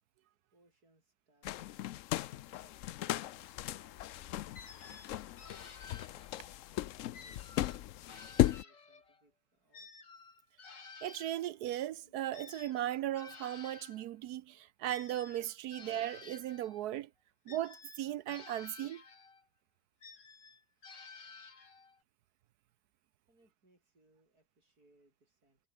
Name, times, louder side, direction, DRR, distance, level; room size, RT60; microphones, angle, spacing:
voice 1, 0.5-2.1 2.5-2.9 3.3-5.1 6.1-9.9 23.3-25.7, right 2 dB, 60° right, 8.3 m, -70 dB
sound 1, 1.4-8.6, left 14 dB, 70° left, 0.7 m, -36 dB
sound 2, 4.5-6.6 7.1-9.2 9.7-14.1 14.9-16.8 17.5-19.4 20.0-22.0, left 4 dB, 90° left, 3.7 m, -53 dB
voice 2, 11.0-17.1 17.5-19.0, right 12 dB, 75° right, 1.1 m, -37 dB
omnidirectional pair, 1.8 m